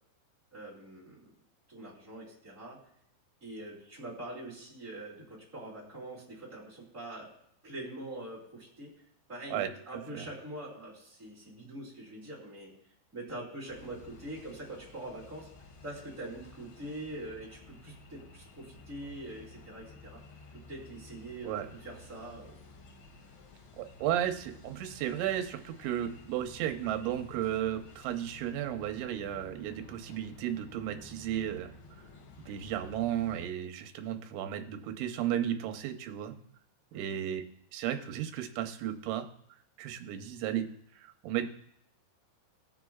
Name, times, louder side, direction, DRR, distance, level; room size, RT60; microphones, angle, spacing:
voice 1, 0.5-1.3 1.7-2.8 3.4-7.3 7.6-8.9 9.3-12.7 13.1-15.5 15.8-20.2 20.7-22.6 36.9-37.2, right 1 dB, 20° right, -5 dB, 2.6 m, -44 dB
voice 2, 9.5-10.3 21.4-21.7 23.8-31.7 32.5-36.4 36.9-37.4 37.7-39.3 39.8-40.7 41.0-41.5, right 11 dB, 85° right, 6 dB, 3.2 m, -34 dB
sound 1, 13.7-33.5, left 3 dB, 85° left, 3.9 m, -53 dB
19.5 x 7.3 x 2.3 m, 0.72 s
omnidirectional pair, 5.3 m